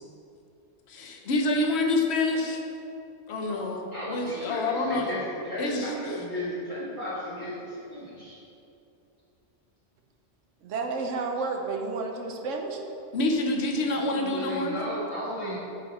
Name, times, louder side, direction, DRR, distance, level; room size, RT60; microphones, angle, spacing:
voice 1, 0.9-2.6 3.3-5.1 5.6-5.9 13.1-14.8, left 2 dB, 65° left, 2 dB, 1.0 m, -27 dB
voice 2, 3.9-8.4 14.1-15.6, equal, 25° right, -12 dB, 1.6 m, -35 dB
voice 3, 10.6-12.8, right 4 dB, 85° right, 3 dB, 1.1 m, -31 dB
8.4 x 5.0 x 4.2 m, 2.8 s
omnidirectional pair, 1.3 m